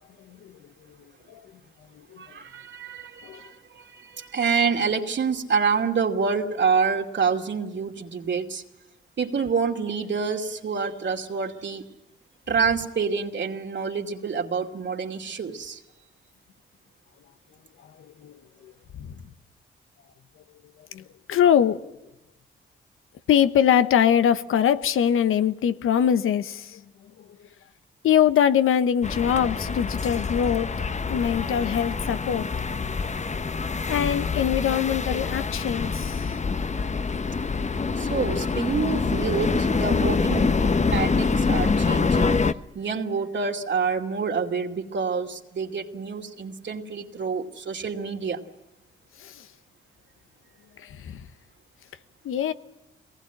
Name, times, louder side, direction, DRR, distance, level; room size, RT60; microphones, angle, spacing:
voice 1, 2.2-8.6 9.2-11.8 12.5-15.8 37.9-40.5 40.9-42.5 42.7-48.4, right 5 dB, 60° right, 2.7 m, -27 dB
voice 2, 18.0-19.2 20.9-21.0 21.3-21.8 23.3-26.8 28.0-30.7 31.1-32.5 33.9-36.3 49.2-49.5 50.8-51.2 52.2-52.5, left 9 dB, 80° left, 1.1 m, -23 dB
sound 1, 29.0-42.5, left 4 dB, 35° left, 1.1 m, -25 dB
22.5 x 19.0 x 9.1 m
supercardioid pair, 50°, 21 cm